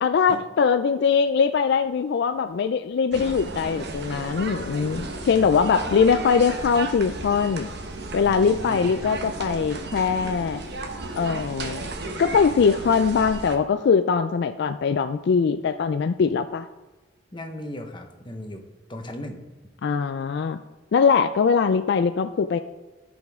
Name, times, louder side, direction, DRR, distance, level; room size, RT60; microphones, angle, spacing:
voice 1, 0.0-7.7 8.1-10.6 11.1-11.9 12.2-16.7 19.8-20.6 20.9-22.6, left 6 dB, 65° left, 10 dB, 0.3 m, -22 dB
sound 1, 3.1-13.6, right 2 dB, 65° right, 1.0 m, -34 dB
voice 2, 4.8-5.5 8.2-8.9 17.3-18.6 18.9-19.4, left 1 dB, 25° left, 4 dB, 1.0 m, -37 dB
15.0 x 5.3 x 3.6 m, 1.2 s
head